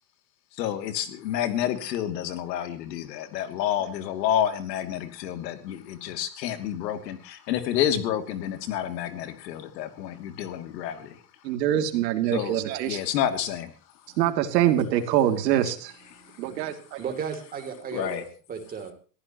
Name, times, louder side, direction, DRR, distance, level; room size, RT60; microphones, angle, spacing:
voice 1, 0.6-11.1 12.3-12.6 12.9-13.7 17.9-18.2, left 10 dB, 85° left, 8 dB, 2.8 m, -29 dB
voice 2, 11.4-13.0 14.2-15.9 16.4-17.0, right 11 dB, 85° right, 7 dB, 2.9 m, -24 dB
voice 3, 17.0-18.9, right 6 dB, 15° right, 4 dB, 3.0 m, -34 dB
22.5 x 15.0 x 3.0 m, 0.39 s
supercardioid pair, 180°, 49 cm